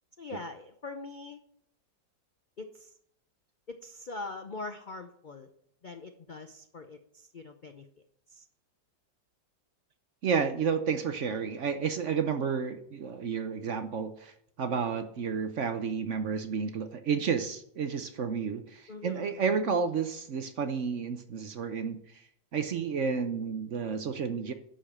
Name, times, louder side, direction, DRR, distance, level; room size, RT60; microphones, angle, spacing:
voice 1, 0.2-1.4 2.6-2.9 3.7-5.5 5.8-7.9 8.3-8.5 18.9-19.4, left 3 dB, 70° left, 7 dB, 0.4 m, -42 dB
voice 2, 10.2-22.2 22.5-24.5, right 6 dB, 55° right, 8 dB, 0.9 m, -31 dB
11.0 x 5.1 x 7.3 m, 0.69 s
omnidirectional pair, 1.9 m